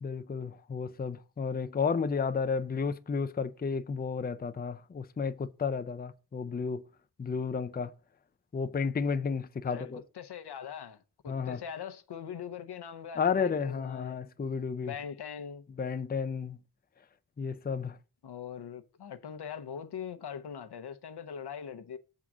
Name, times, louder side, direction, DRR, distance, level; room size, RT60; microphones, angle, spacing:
voice 1, 0.0-6.8 7.2-7.9 8.5-10.0 11.3-11.6 13.2-14.9 15.8-16.6 17.4-18.0, left 5 dB, 25° left, 0.5 m, -32 dB
voice 2, 9.6-14.2 14.8-15.6 18.2-22.0, left 7 dB, 80° left, 0.8 m, -42 dB
7.3 x 3.8 x 6.0 m
wide cardioid pair, 70°, 39 cm